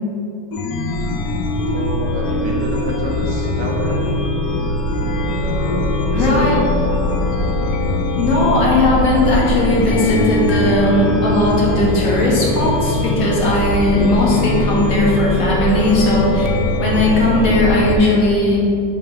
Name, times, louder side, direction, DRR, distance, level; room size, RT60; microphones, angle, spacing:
Chime, 0.5-18.0, left 2 dB, 85° left, 0.8 m, -20 dB
voice 1, 1.7-4.4 5.4-6.6 17.4-17.8, equal, 65° right, -1 dB, 0.9 m, -28 dB
voice 2, 6.1-6.6 8.2-16.5 16.8-18.6, left 1 dB, 50° left, -5 dB, 1.6 m, -17 dB
6.4 x 3.8 x 4.7 m, 2.7 s
omnidirectional pair, 2.1 m